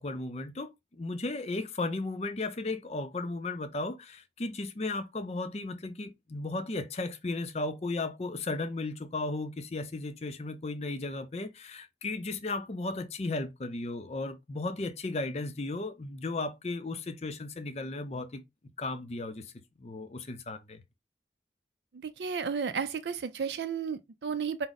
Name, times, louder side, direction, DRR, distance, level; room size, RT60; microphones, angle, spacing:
voice 1, 0.0-18.4 18.8-19.5 19.8-20.8, left 2 dB, 35° left, 0.5 m, -35 dB
voice 2, 21.9-24.7, right 6 dB, 75° right, 0.4 m, -33 dB
4.7 x 2.1 x 4.0 m
head